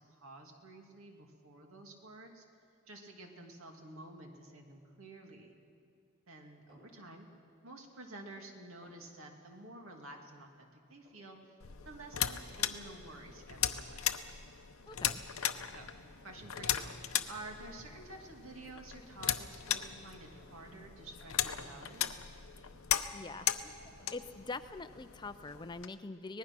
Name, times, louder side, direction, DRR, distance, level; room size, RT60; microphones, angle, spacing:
voice 1, 0.1-2.4 2.9-5.6 6.3-7.3 7.6-11.5 11.8-14.1 15.7-15.9 16.2-22.2, right 2 dB, 75° right, 2 dB, 2.5 m, -51 dB
sound 1, 6.7-7.0 7.5-8.2 8.5-9.1 9.8-10.2 10.5-10.6 10.8-11.5 11.8-11.9 12.4-12.9 13.4-13.7 14.5-14.6 15.1-16.5 16.9-17.1 17.9-18.3 19.2-19.9 20.2-21.3 21.8-22.1, right 1 dB, 50° right, 7.4 m, -66 dB
sound 2, 11.6-25.9, left 10 dB, 80° left, 0.8 m, -38 dB
voice 2, 14.9-15.2 23.1-23.5 24.1-26.4, left 3 dB, 20° left, 11 dB, 0.5 m, -43 dB
sound 3, 14.9-24.1, right 1 dB, 15° right, 1.7 m, -63 dB
24.5 x 19.5 x 6.1 m, 2.4 s
head